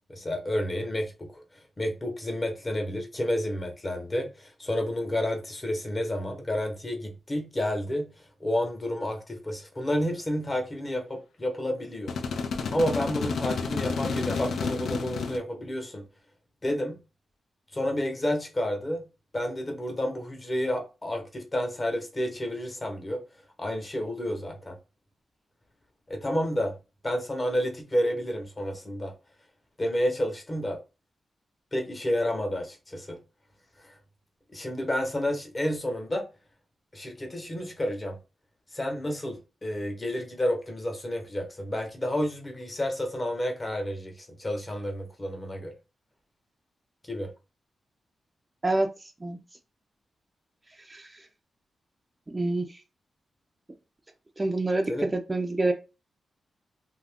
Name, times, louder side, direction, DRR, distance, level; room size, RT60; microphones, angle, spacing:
voice 1, 0.1-1.4 1.8-8.1 8.4-12.1 12.7-16.0 16.6-17.0 17.7-19.1 19.3-23.2 23.6-24.8 26.1-26.7 27.0-29.1 29.8-30.8 31.7-33.2 33.8-33.9 34.5-36.2 36.9-38.2 38.7-45.7 47.1-47.3 54.9-55.1, left 1 dB, 25° left, 0.8 m, -30 dB
sound 1, 12.1-15.4, left 5 dB, 75° left, 0.4 m, -30 dB
voice 2, 48.6-49.4 50.9-51.2 52.3-52.8 54.4-55.7, right 2 dB, 20° right, 0.4 m, -27 dB
2.7 x 2.4 x 3.4 m
wide cardioid pair, 105°, 0 cm